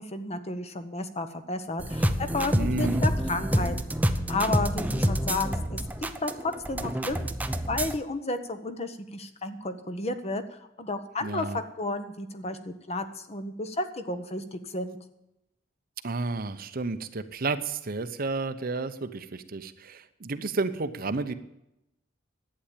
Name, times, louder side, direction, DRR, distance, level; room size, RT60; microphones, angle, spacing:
voice 1, 0.0-3.8 4.3-5.8 6.2-7.4 7.7-15.0, left 2 dB, 35° left, 9 dB, 1.1 m, -32 dB
sound 1, 1.8-8.0, equal, 10° right, 0.7 m, -28 dB
voice 2, 2.5-3.0 11.2-11.6 16.0-21.3, right 3 dB, 50° right, 11 dB, 0.8 m, -31 dB
11.5 x 8.7 x 8.4 m, 0.86 s
head